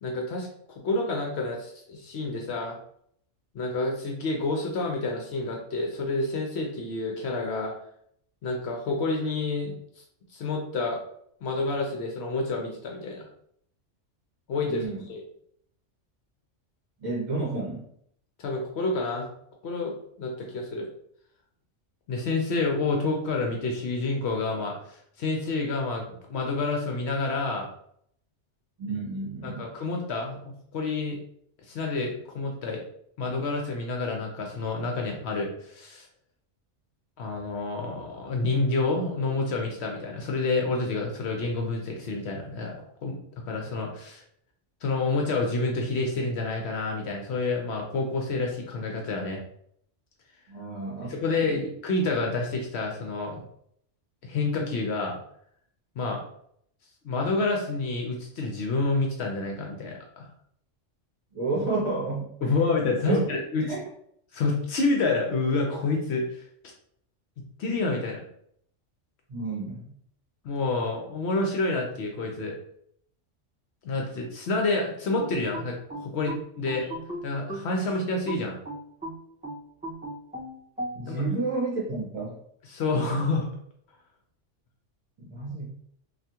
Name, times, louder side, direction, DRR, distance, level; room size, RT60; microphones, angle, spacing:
voice 1, 0.0-0.5 0.8-2.8 3.5-7.7 8.4-9.8 10.3-11.0 11.4-13.2 14.5-15.2 18.4-19.3 19.6-20.9 22.1-27.7 29.4-31.2 31.7-32.8 33.2-36.1 37.2-42.7 43.0-43.1 43.4-44.2 44.8-49.4 51.0-53.4 54.2-55.2 56.0-56.2 57.0-60.3 62.4-63.6 64.3-66.4 67.6-68.2 70.4-72.6 73.8-76.8 77.2-78.6 81.1-81.2 82.7-83.5, left 3 dB, 65° left, 1 dB, 0.8 m, -28 dB
voice 2, 14.7-15.0 17.0-17.9 28.8-29.7 50.5-51.6 61.3-62.5 63.1-63.3 63.6-63.8 69.3-69.9 80.9-82.4 85.2-85.7, right 3 dB, 40° right, -6 dB, 1.2 m, -31 dB
sound 1, 75.2-77.7 78.3-81.0, right 1 dB, 5° right, 1.0 m, -37 dB
3.4 x 2.4 x 2.8 m, 0.68 s
omnidirectional pair, 1.3 m